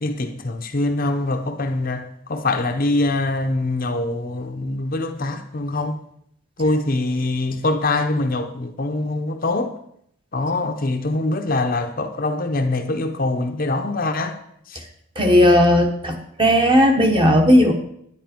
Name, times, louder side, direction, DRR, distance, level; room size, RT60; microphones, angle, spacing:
voice 1, 0.0-6.0 6.6-9.7 10.3-14.4 14.7-14.8, left 2 dB, 40° left, 0.7 m, -23 dB
voice 2, 15.2-17.7, equal, 25° right, 1.2 m, -15 dB
10.5 x 9.8 x 4.5 m
head